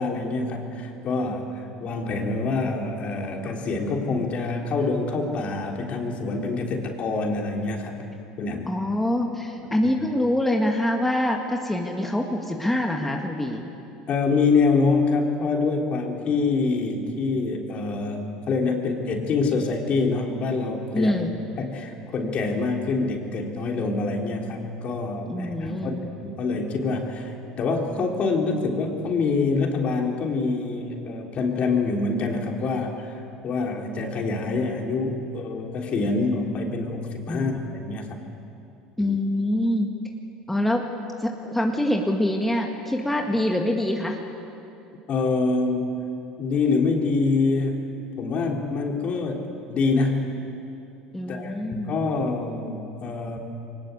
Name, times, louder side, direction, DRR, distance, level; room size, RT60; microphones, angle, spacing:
voice 1, 0.0-8.0 8.4-8.7 14.1-21.1 21.6-33.1 33.4-38.2 39.0-39.2 45.1-46.0 46.4-47.8 48.2-49.4 49.7-50.3 51.3-53.4, left 3 dB, 45° left, 2 dB, 3.6 m, -25 dB
voice 2, 8.7-13.6 20.9-21.4 25.3-26.0 37.3-37.5 39.0-39.9 40.5-40.9 41.2-44.2 51.1-51.9, left 1 dB, 5° left, 1 dB, 2.1 m, -25 dB
23.0 x 19.5 x 8.4 m, 2.7 s
hypercardioid pair, 75°, 3 cm